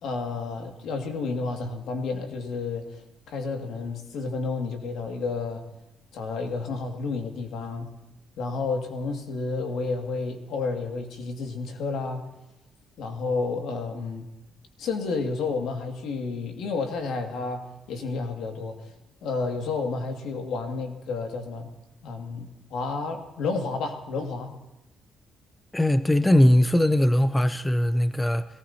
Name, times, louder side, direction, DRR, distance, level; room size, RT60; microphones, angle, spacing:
voice 1, 0.0-3.0 3.3-5.6 6.1-7.9 8.4-12.2 13.0-14.3 14.8-18.9 19.2-21.7 22.0-24.5, left 4 dB, 80° left, 3 dB, 2.3 m, -31 dB
voice 2, 25.7-28.4, left 1 dB, 10° left, 12 dB, 0.6 m, -20 dB
22.0 x 18.0 x 2.9 m, 0.97 s
cardioid pair, 90°, 0 cm